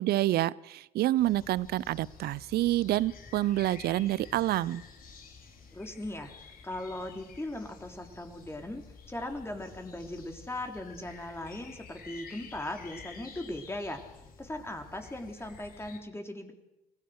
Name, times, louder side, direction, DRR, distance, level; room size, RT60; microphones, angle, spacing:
voice 1, 0.0-4.8, right 15 dB, 65° right, 22 dB, 0.6 m, -28 dB
sound 1, 1.2-16.0, left 5 dB, 55° left, 4.0 m, -51 dB
voice 2, 5.7-6.3 6.6-14.0 14.4-16.5, left 1 dB, 15° left, 4 dB, 3.4 m, -39 dB
24.5 x 17.0 x 6.6 m, 0.93 s
hypercardioid pair, 55°, 18 cm